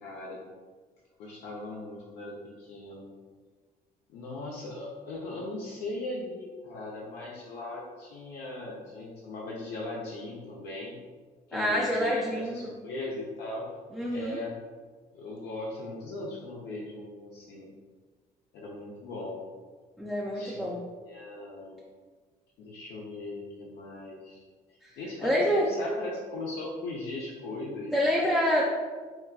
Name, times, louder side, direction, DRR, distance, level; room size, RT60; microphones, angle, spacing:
voice 1, 0.0-0.4 1.2-3.1 4.1-11.0 11.5-13.7 14.1-14.6 15.1-17.7 18.5-19.4 20.3-20.7 21.1-21.8 22.6-24.4 25.0-27.9, left 2 dB, 75° left, -4 dB, 0.5 m, -38 dB
voice 2, 11.5-12.7 13.9-14.4 20.0-20.8 24.8-24.9 25.2-25.7 27.9-28.6, equal, ahead, -5 dB, 0.4 m, -27 dB
3.9 x 2.2 x 2.3 m, 1.5 s
cardioid pair, 110°, 17 cm